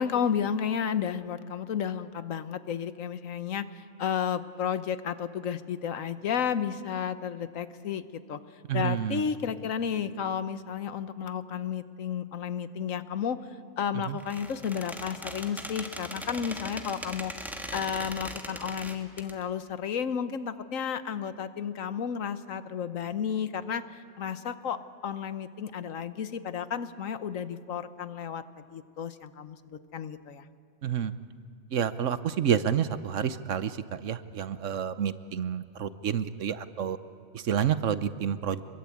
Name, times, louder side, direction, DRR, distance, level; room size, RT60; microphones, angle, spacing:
voice 1, 0.0-8.4 8.7-13.4 13.8-30.4, left 7 dB, 75° left, 12 dB, 1.3 m, -32 dB
voice 2, 8.7-9.2 14.1-14.2 30.8-31.1 31.7-37.0 37.3-38.6, right 8 dB, 70° right, 13 dB, 1.2 m, -29 dB
Squeak, 14.2-19.3, equal, ahead, 1.8 m, -40 dB
26.0 x 22.5 x 8.6 m, 2.4 s
omnidirectional pair, 1.4 m